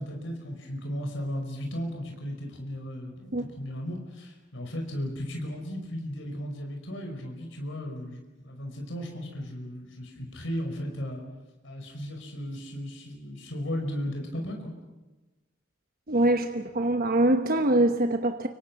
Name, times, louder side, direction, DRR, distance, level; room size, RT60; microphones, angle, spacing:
voice 1, 0.0-11.2 11.6-14.7, equal, 70° left, 2 dB, 5.4 m, -35 dB
voice 2, 16.1-18.5, right 1 dB, 50° right, 6 dB, 1.1 m, -23 dB
29.5 x 25.5 x 6.1 m, 1.1 s
head